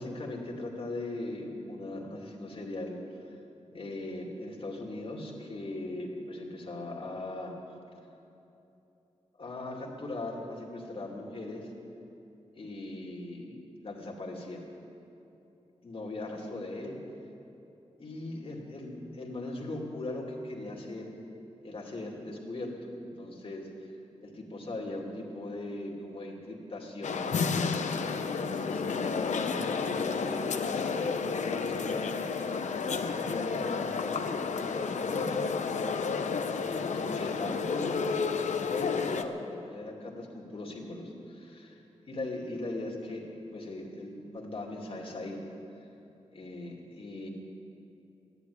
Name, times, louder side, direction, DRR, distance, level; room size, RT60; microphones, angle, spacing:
voice 1, 0.0-3.0 3.7-7.5 9.4-11.7 12.5-14.6 15.8-17.0 18.0-21.1 21.6-23.7 24.2-27.3 28.0-32.1 33.0-35.4 36.6-41.8 42.1-43.2 43.5-45.4 46.3-47.3, left 2 dB, 50° left, -1 dB, 2.6 m, -39 dB
sound 1, 27.0-39.2, left 5 dB, 85° left, 0.8 m, -31 dB
14.0 x 11.0 x 9.5 m, 3.0 s
wide cardioid pair, 90°, 12 cm